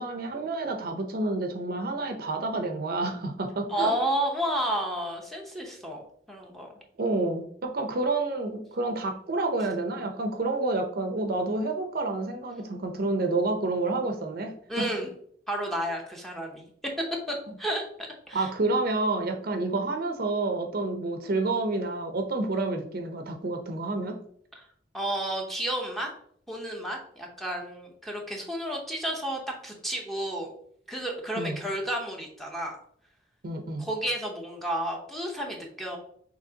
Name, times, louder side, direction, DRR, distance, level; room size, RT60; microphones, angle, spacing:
voice 1, 0.0-3.9 7.0-14.9 18.3-24.2 31.4-31.6 33.4-33.9, right 2 dB, 50° right, 5 dB, 0.6 m, -29 dB
voice 2, 3.7-6.0 6.3-6.7 14.7-15.1 15.5-16.6 17.3-17.9 18.3-18.5 24.6-24.7 24.9-26.1 26.5-30.5 30.9-32.8 33.8-36.0, right 1 dB, ahead, 0 dB, 0.8 m, -31 dB
6.3 x 2.9 x 2.8 m, 0.63 s
head